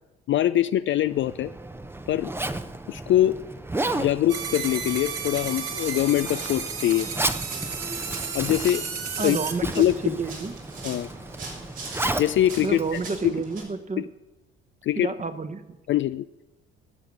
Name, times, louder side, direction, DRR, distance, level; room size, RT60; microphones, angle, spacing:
voice 1, 0.3-1.5 2.1-2.3 2.9-3.4 3.9-7.1 8.3-8.8 9.2-9.4 9.8-10.2 10.8-11.1 12.2-13.3 14.0-14.1 14.8-15.1 15.9-16.2, left 12 dB, 40° left, 13 dB, 0.4 m, -23 dB
Zipper (clothing), 1.0-13.7, right 2 dB, 5° right, 0.8 m, -34 dB
sound 1, 4.3-9.5, right 6 dB, 50° right, 2.0 m, -33 dB
sound 2, 5.3-13.6, right 3 dB, 70° right, 4.3 m, -43 dB
voice 2, 9.2-10.5 12.6-14.0 14.9-15.6, right 4 dB, 25° right, 10 dB, 1.2 m, -30 dB
19.5 x 7.1 x 6.2 m, 1.1 s
figure-of-eight pair, 55°, 31 cm